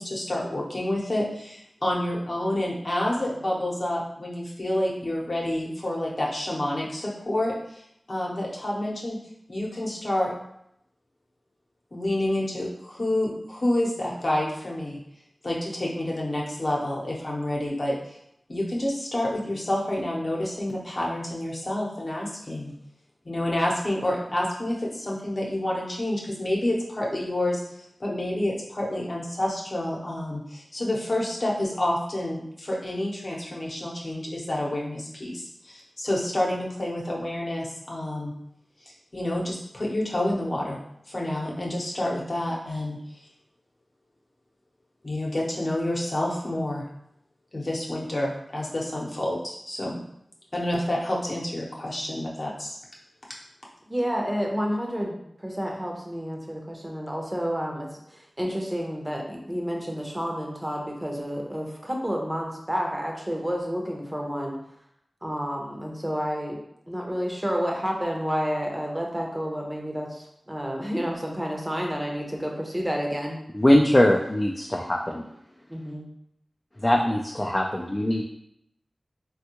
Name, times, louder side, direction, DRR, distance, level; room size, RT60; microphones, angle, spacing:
voice 1, 0.0-7.5 8.1-9.2 9.5-10.3 11.9-15.0 15.4-18.0 18.5-22.7 23.2-27.6 28.0-38.3 39.1-40.8 41.1-43.0 45.0-46.8 47.5-50.0 50.5-52.8, left 1 dB, 50° left, -3 dB, 0.8 m, -28 dB
voice 2, 53.9-64.6 65.2-66.6 66.9-73.4 75.7-76.1, equal, 20° right, 0 dB, 0.7 m, -30 dB
voice 3, 73.5-75.2 76.8-78.2, left 1 dB, 25° left, 0 dB, 0.3 m, -21 dB
3.4 x 2.3 x 2.9 m, 0.76 s
wide cardioid pair, 50°, 0 cm